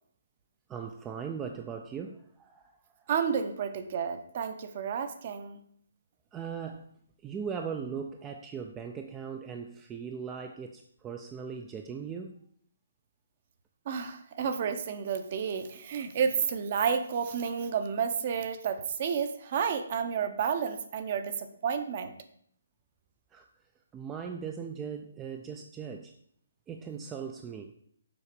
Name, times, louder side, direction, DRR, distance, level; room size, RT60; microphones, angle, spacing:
voice 1, 0.7-2.7 6.3-6.9 7.2-12.4 23.3-23.5 23.9-26.1 26.7-27.7, right 6 dB, 10° right, 4 dB, 0.4 m, -39 dB
voice 2, 3.1-5.6 13.9-22.1, right 7 dB, 35° right, 9 dB, 0.8 m, -31 dB
6.9 x 4.3 x 6.7 m, 0.66 s
hypercardioid pair, 170°, 0 cm